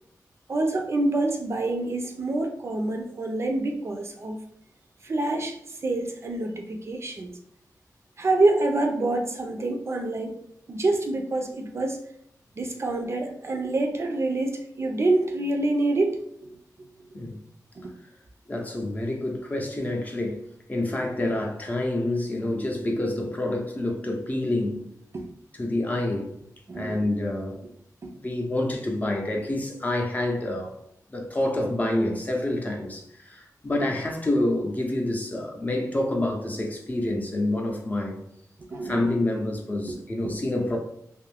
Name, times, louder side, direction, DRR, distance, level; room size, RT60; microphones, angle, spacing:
voice 1, 0.5-4.4 5.0-7.3 8.2-10.3 10.7-12.0 12.6-16.5 17.8-17.9 25.1-25.3 26.7-27.0 38.7-39.1 39.9-40.0 40.2-40.3, right 2 dB, 45° right, 0.4 m, -26 dB
voice 2, 18.5-20.4 20.7-24.8 25.6-26.3 26.7-27.6 28.1-30.7 31.1-38.2 38.8-40.8, left 1 dB, 25° left, 0.6 m, -27 dB
2.6 x 2.4 x 3.3 m
wide cardioid pair, 145°, 6 cm